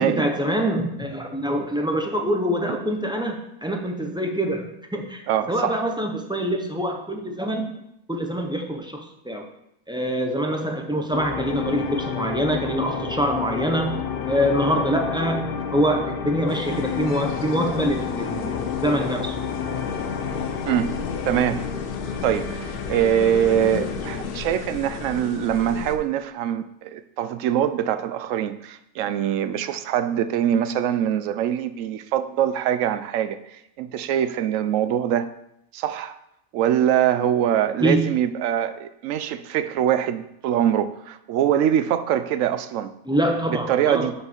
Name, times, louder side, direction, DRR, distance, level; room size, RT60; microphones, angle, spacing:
voice 1, 0.0-7.8 8.1-9.5 9.9-13.9 14.3-19.4 37.8-38.1 43.1-44.1, equal, 5° right, 2 dB, 0.5 m, -25 dB
voice 2, 5.3-5.8 20.6-20.9 21.3-21.6 22.2-33.4 33.8-35.3 35.7-36.2 36.5-42.9 43.5-44.1, right 10 dB, 70° right, 12 dB, 0.8 m, -23 dB
sound 1, 11.1-24.5, left 6 dB, 55° left, 0.7 m, -30 dB
sound 2, 16.5-26.0, left 6 dB, 85° left, 1.3 m, -35 dB
5.9 x 5.7 x 6.8 m, 0.79 s
omnidirectional pair, 1.6 m